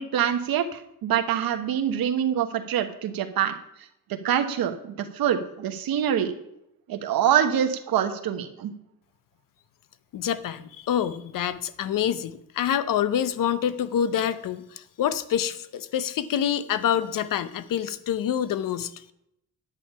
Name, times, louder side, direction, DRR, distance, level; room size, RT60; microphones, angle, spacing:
voice 1, 0.0-3.5 4.1-6.3 6.9-8.7, right 9 dB, 75° right, 7 dB, 1.3 m, -25 dB
voice 2, 10.1-18.9, left 9 dB, 60° left, 14 dB, 0.8 m, -26 dB
10.5 x 8.7 x 5.5 m, 0.80 s
cardioid pair, 155°, 36 cm